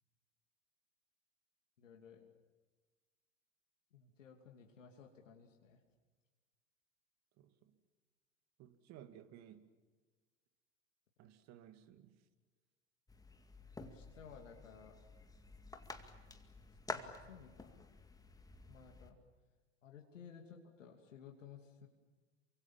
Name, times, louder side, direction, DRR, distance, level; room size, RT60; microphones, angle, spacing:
voice 1, 1.8-2.3 3.9-5.8 13.8-15.0 16.9-17.8 18.7-19.2 19.8-21.9, left 7 dB, 75° left, 2 dB, 2.8 m, -57 dB
voice 2, 7.4-7.7 8.6-9.7 11.2-12.2, right 10 dB, 45° right, 10 dB, 2.4 m, -57 dB
sound 1, 13.1-19.1, left 3 dB, 10° left, 2.2 m, -50 dB
28.5 x 25.0 x 7.4 m, 1.4 s
figure-of-eight pair, 85°, 38 cm